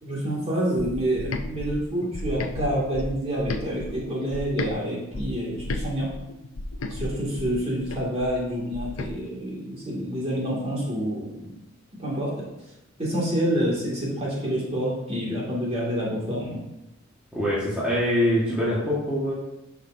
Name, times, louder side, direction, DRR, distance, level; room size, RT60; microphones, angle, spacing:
voice 1, 0.0-6.1 6.9-11.5 12.0-12.5 13.0-16.6, equal, 30° right, -5 dB, 2.4 m, -28 dB
sound 1, 0.8-4.7 5.1-9.1, left 2 dB, 80° left, 0.6 m, -33 dB
voice 2, 17.3-19.3, equal, 5° right, -9 dB, 1.7 m, -24 dB
11.0 x 5.8 x 2.8 m, 0.91 s
head